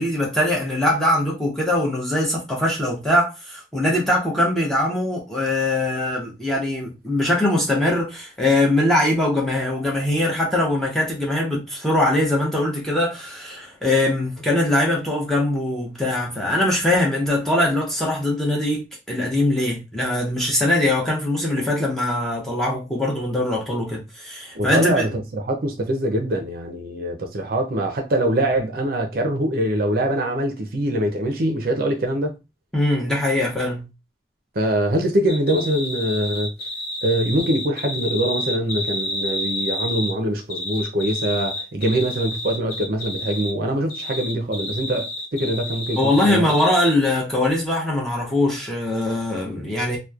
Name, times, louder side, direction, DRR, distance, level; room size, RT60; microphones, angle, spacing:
voice 1, 0.0-25.0 32.7-33.9 46.0-50.0, left 1 dB, ahead, 0.8 m, -22 dB
voice 2, 24.5-32.4 34.5-36.5 37.0-46.6, right 1 dB, 55° right, 0.5 m, -23 dB
sound 1, 35.3-40.1 40.5-43.5 43.9-46.9, left 1 dB, 90° left, 1.0 m, -30 dB
2.9 x 2.1 x 2.3 m
head